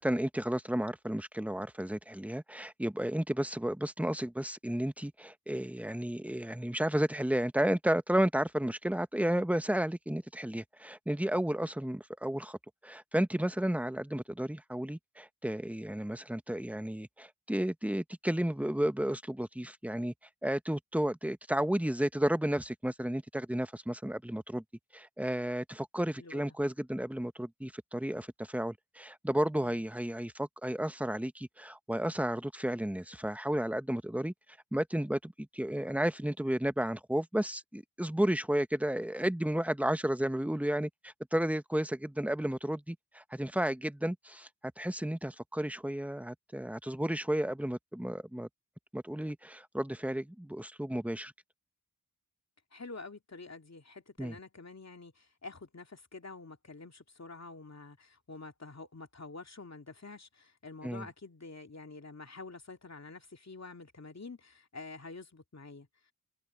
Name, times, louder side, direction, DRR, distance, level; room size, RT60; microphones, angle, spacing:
voice 1, 0.0-12.6 12.8-20.1 20.4-24.6 24.9-34.3 34.7-44.5 44.8-48.5 48.9-51.3 54.2-54.3 60.8-61.1, right 1 dB, 5° right, 1.0 m, -32 dB
voice 2, 26.2-26.6 29.6-29.8 52.7-66.1, left 3 dB, 45° left, 2.7 m, -48 dB
open air
cardioid pair, 55°, 37 cm